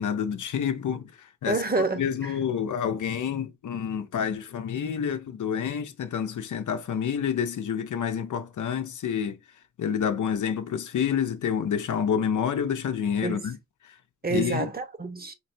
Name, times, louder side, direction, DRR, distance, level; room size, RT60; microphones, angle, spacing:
voice 1, 0.0-1.6 2.0-9.4 9.8-13.6 13.8-14.0 14.3-14.7, left 8 dB, 70° left, 0.7 m, -28 dB
voice 2, 1.5-2.3 13.2-13.4 14.2-15.3, right 3 dB, 30° right, 1.0 m, -28 dB
4.7 x 3.2 x 2.7 m
cardioid pair, 60°, 32 cm